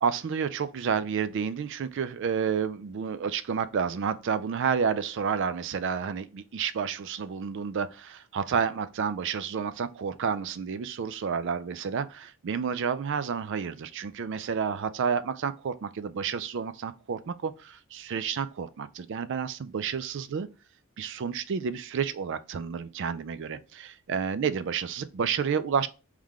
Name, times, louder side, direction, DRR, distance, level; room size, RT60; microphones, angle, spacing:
voice 1, 0.0-20.5 21.0-25.9, right 6 dB, 55° right, 0.3 m, -30 dB
3.7 x 3.2 x 3.5 m
head